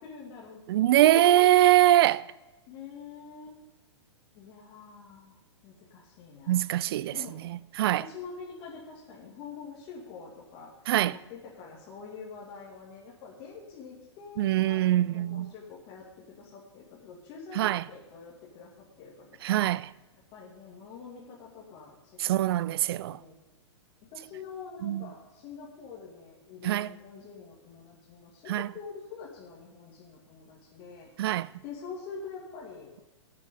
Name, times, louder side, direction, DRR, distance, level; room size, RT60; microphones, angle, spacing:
voice 1, 0.0-1.7 2.7-3.6 4.3-5.4 5.6-6.7 7.1-7.4 8.0-10.8 11.1-19.6 20.1-22.4 22.6-23.4 24.1-31.3 31.6-33.0, left 5 dB, 35° left, 2.6 m, -45 dB
voice 2, 0.7-2.2 6.5-7.2 7.8-8.0 10.9-11.1 14.4-15.5 17.6-17.8 19.4-19.9 22.2-23.2 24.8-25.1 26.6-26.9 28.5-28.7 31.2-31.5, right 14 dB, 55° right, 0.4 m, -23 dB
19.0 x 7.6 x 3.9 m
figure-of-eight pair, 110°, 15 cm